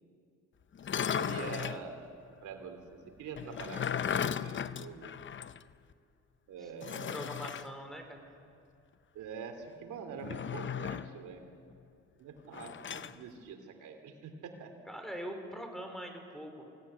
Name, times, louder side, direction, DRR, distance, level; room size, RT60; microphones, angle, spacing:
sound 1, 0.8-1.8 3.4-5.6 5.9-6.0 6.8-7.7 10.2-11.2 12.5-13.2, left 8 dB, 40° left, 0.7 m, -36 dB
voice 1, 1.0-2.1 2.4-5.1 6.5-7.2 9.1-11.5 12.2-14.7, right 6 dB, 80° right, 5 dB, 3.0 m, -45 dB
voice 2, 7.1-8.2 14.9-16.7, equal, ahead, 4 dB, 4.1 m, -42 dB
22.0 x 17.5 x 9.8 m, 2.4 s
cardioid pair, 90°, 30 cm